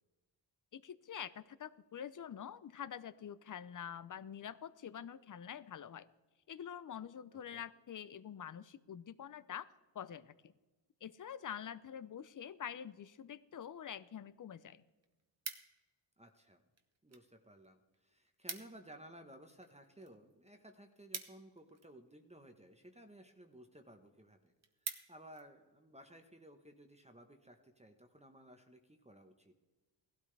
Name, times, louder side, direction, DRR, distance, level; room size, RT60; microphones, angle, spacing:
voice 1, 0.7-6.1 6.5-10.5 11.0-14.8, left 9 dB, 45° left, 17 dB, 0.6 m, -46 dB
sound 1, 14.9-16.0 16.7-17.3 17.6-17.7 17.9-18.0 18.3-18.9 19.2-22.1 22.8-23.1 23.6-23.7 24.1-24.2 24.5-25.5 25.9-26.2, right 4 dB, 35° right, 1.2 m, -47 dB
voice 2, 16.2-16.6 17.0-24.5 24.8-29.5, right 1 dB, 15° right, 5 dB, 1.1 m, -57 dB
16.5 x 12.5 x 3.3 m, 1.2 s
cardioid pair, 65°, 45 cm